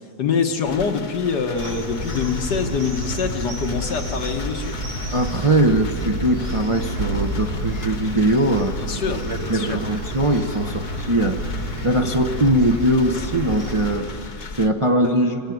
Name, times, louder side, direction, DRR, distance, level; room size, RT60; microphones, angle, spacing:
voice 1, 0.2-4.8 8.8-9.8 15.0-15.2, left 5 dB, 80° left, 5 dB, 2.1 m, -25 dB
sound 1, 0.6-14.7, left 4 dB, 40° left, 0.7 m, -38 dB
sound 2, 1.5-14.0, equal, 65° right, 4.5 m, -30 dB
voice 2, 5.1-15.4, right 1 dB, 30° right, 4 dB, 0.6 m, -21 dB
25.0 x 18.0 x 9.3 m, 2.7 s
omnidirectional pair, 1.8 m